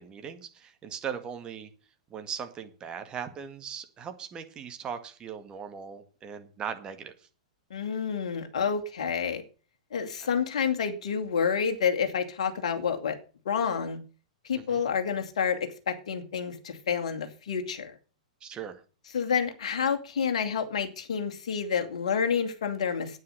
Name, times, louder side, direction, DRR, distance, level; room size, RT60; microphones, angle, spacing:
voice 1, 0.0-1.7 2.1-7.1 10.2-10.3 14.5-14.8 18.4-18.8, right 7 dB, 25° right, 7 dB, 2.0 m, -39 dB
voice 2, 7.7-9.4 9.9-13.2 13.4-14.0 14.4-17.9 19.1-23.2, left 6 dB, 60° left, 6 dB, 2.5 m, -29 dB
9.9 x 9.2 x 6.7 m, 0.36 s
figure-of-eight pair, 105°, 4 cm